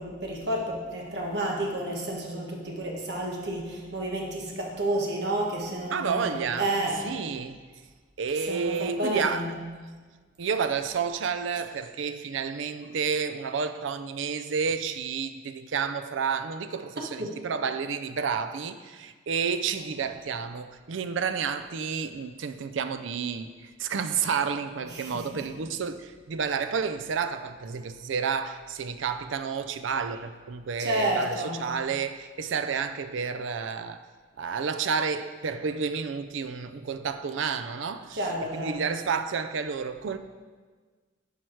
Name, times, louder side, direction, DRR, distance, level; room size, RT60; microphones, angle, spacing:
voice 1, 0.0-7.1 8.5-9.5 17.2-17.3 24.8-25.4 30.8-31.6 38.1-38.8, right 1 dB, 55° right, 1.5 m, -30 dB
voice 2, 5.9-6.7 7.0-7.6 8.2-9.5 10.4-34.0 34.4-38.2 38.5-40.2, right 6 dB, 75° right, 0.4 m, -30 dB
10.5 x 4.7 x 4.6 m
head